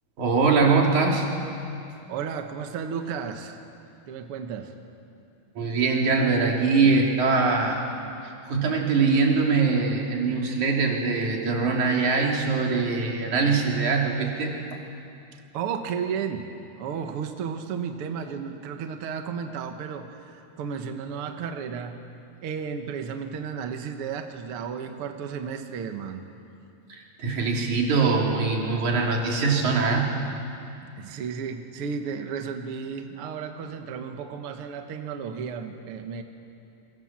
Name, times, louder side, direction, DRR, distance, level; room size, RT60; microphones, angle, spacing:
voice 1, 0.2-1.3 5.6-7.8 8.5-14.5 26.9-30.1, right 4 dB, 50° right, -1 dB, 4.3 m, -22 dB
voice 2, 2.1-3.6 4.1-4.7 15.3-16.5 16.8-22.0 22.4-26.2 30.8-36.2, right 6 dB, 70° right, 6 dB, 1.3 m, -33 dB
27.5 x 23.0 x 7.4 m, 2.6 s
omnidirectional pair, 4.4 m